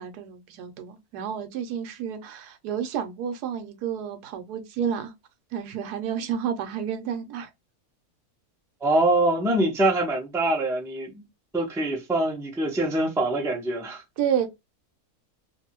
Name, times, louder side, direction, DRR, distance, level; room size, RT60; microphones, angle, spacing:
voice 1, 0.0-5.1 5.5-7.5 14.2-14.5, right 8 dB, 85° right, 1.2 m, -30 dB
voice 2, 8.8-11.2 11.5-14.0, right 1 dB, 5° right, 0.4 m, -24 dB
2.6 x 2.6 x 2.8 m
omnidirectional pair, 1.7 m